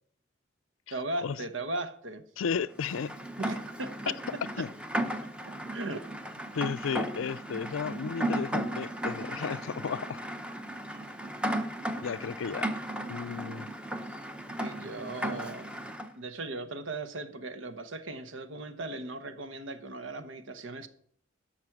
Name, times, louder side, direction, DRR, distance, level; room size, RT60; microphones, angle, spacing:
voice 1, 0.9-2.2 3.4-4.2 4.6-4.7 5.2-6.1 14.6-15.8 16.1-20.9, right 2 dB, 80° right, 1.0 m, -38 dB
voice 2, 2.4-3.2 4.6-4.7 6.5-10.3 12.0-12.7 13.1-13.7, left 6 dB, 85° left, 0.4 m, -34 dB
Rain, 2.8-16.1, right 1 dB, 5° right, 0.6 m, -35 dB
12.5 x 6.0 x 5.9 m
head